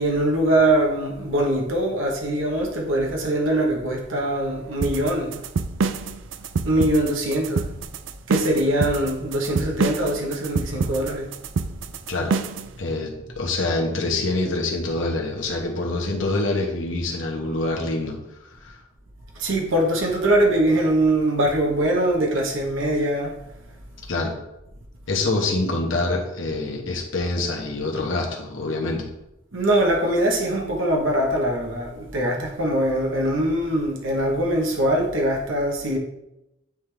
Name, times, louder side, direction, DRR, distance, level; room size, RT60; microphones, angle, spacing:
voice 1, 0.0-5.4 6.6-7.7 8.3-11.3 19.4-23.3 29.5-36.0, right 1 dB, 90° right, 0 dB, 1.2 m, -22 dB
sound 1, 4.8-12.7, right 4 dB, 70° right, 0.4 m, -26 dB
voice 2, 12.8-18.2 18.6-18.8 24.1-24.3 25.1-29.0, left 2 dB, 80° left, 0 dB, 1.2 m, -25 dB
8.9 x 3.8 x 3.4 m, 0.88 s
head